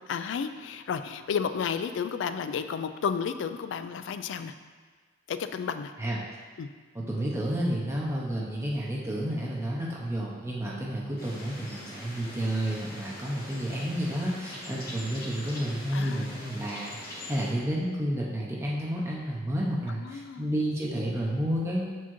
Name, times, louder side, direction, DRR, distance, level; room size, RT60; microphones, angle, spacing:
voice 1, 0.1-4.5 5.3-5.9 6.6-6.7 15.9-16.3 20.0-20.5, left 6 dB, 65° left, 10 dB, 0.3 m, -32 dB
voice 2, 6.9-21.9, right 1 dB, 15° right, -4 dB, 0.6 m, -31 dB
sound 1, 11.2-17.5, left 1 dB, 50° left, 1.4 m, -43 dB
7.0 x 4.5 x 3.0 m, 1.5 s
head